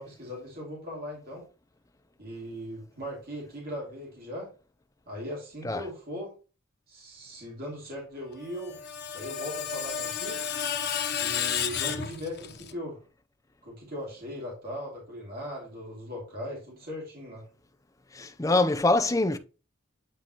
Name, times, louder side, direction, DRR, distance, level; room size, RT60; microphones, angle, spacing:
voice 1, 0.0-1.4 2.2-4.5 5.1-6.3 6.9-8.8 9.1-10.5 11.2-13.0 13.6-17.5, equal, 45° right, 2.6 m, -39 dB
Screech, 8.4-12.7, left 8 dB, 55° left, 0.7 m, -32 dB
voice 2, 18.1-19.4, left 2 dB, 15° left, 0.5 m, -24 dB
9.0 x 4.0 x 2.9 m
head